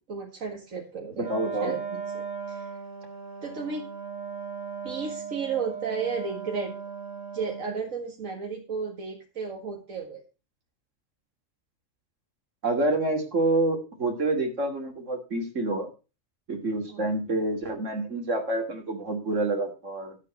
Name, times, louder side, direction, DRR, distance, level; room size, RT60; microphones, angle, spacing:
voice 1, 0.0-1.3 1.6-2.8 3.4-3.9 4.8-6.7 7.3-10.2 16.9-17.0, right 5 dB, 85° right, 1 dB, 2.2 m, -33 dB
Wind instrument woodwind instrument, 1.2-7.8, right 6 dB, 35° right, 3.2 m, -37 dB
voice 2, 1.3-1.8 12.6-15.9 16.5-20.2, right 2 dB, 70° right, 2 dB, 3.1 m, -27 dB
12.5 x 8.2 x 4.4 m, 0.32 s
omnidirectional pair, 1.3 m